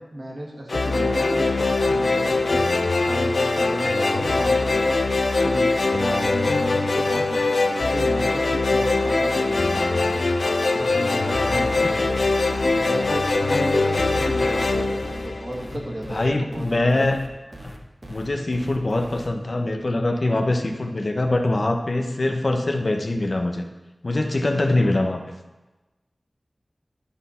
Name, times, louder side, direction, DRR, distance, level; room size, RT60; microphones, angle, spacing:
voice 1, 0.1-2.6 3.1-5.0 5.4-12.2 12.6-17.0, right 1 dB, 50° right, -2 dB, 1.7 m, -33 dB
sound 1, 0.7-16.0, left 3 dB, 80° left, 0.5 m, -22 dB
voice 2, 11.4-12.0 12.9-13.1 16.1-17.2 17.6-17.7 18.1-23.6 24.0-25.2, left 2 dB, 60° left, 4 dB, 0.9 m, -23 dB
sound 2, 11.5-19.3, right 1 dB, 35° right, 1.2 m, -41 dB
11.5 x 4.3 x 5.6 m, 1.1 s
wide cardioid pair, 55°, 0 cm